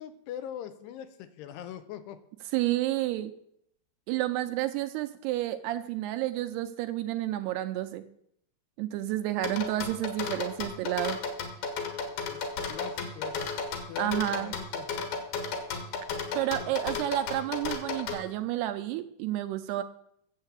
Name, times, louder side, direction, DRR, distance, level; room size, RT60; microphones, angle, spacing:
voice 1, 0.0-2.2 12.3-13.5 13.9-14.9 16.6-16.7, left 10 dB, 85° left, 9 dB, 2.8 m, -42 dB
voice 2, 2.5-3.3 4.1-8.0 8.8-11.2 14.0-14.5 16.3-19.8, right 14 dB, 80° right, 8 dB, 2.5 m, -30 dB
sound 1, 9.4-18.2, left 4 dB, 65° left, 3.4 m, -33 dB
10.5 x 7.4 x 8.1 m, 0.73 s
omnidirectional pair, 5.0 m